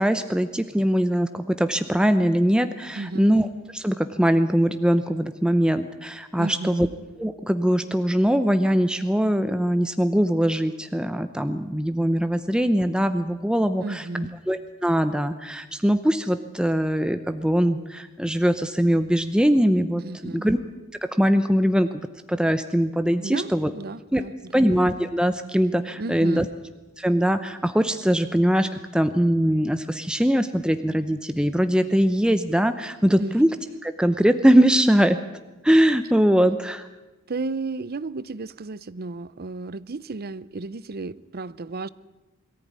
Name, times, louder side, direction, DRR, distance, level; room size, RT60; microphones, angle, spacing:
voice 1, 0.0-3.5 3.7-6.9 7.2-20.0 20.3-20.6 21.2-21.9 22.3-23.7 24.1-24.2 24.5-26.5 27.0-33.5 33.8-35.2 35.6-36.9, equal, 5° right, 0.7 m, -21 dB
voice 2, 2.9-3.3 6.4-6.8 13.8-14.4 20.0-20.4 23.2-24.6 26.0-26.5 33.2-33.3 37.3-41.9, right 3 dB, 45° right, 0.6 m, -33 dB
22.0 x 14.5 x 9.5 m
head